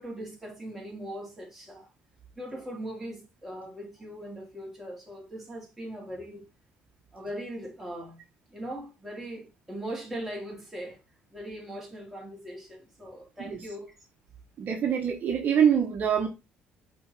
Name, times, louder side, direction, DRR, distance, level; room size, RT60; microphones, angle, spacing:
voice 1, 0.0-1.9 2.4-6.4 7.1-8.2 8.5-11.0 11.3-13.9, right 1 dB, 10° right, 4.1 m, -40 dB
voice 2, 14.6-16.3, right 8 dB, 50° right, 1.4 m, -24 dB
8.3 x 4.0 x 4.6 m
cardioid pair, 100°, 4 cm